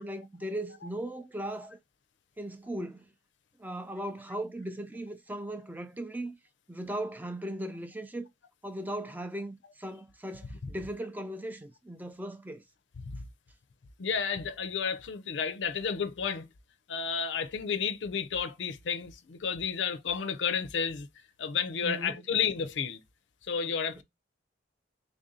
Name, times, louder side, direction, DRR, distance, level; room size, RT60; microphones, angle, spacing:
voice 1, 0.0-1.8 2.4-3.1 3.6-6.4 6.7-8.3 8.6-12.6 21.8-22.3 24.0-24.1, right 1 dB, 10° right, 0.4 m, -38 dB
voice 2, 14.0-16.5 16.9-21.1 21.4-23.0 23.5-24.0, left 6 dB, 70° left, 0.5 m, -31 dB
3.4 x 2.6 x 3.7 m
head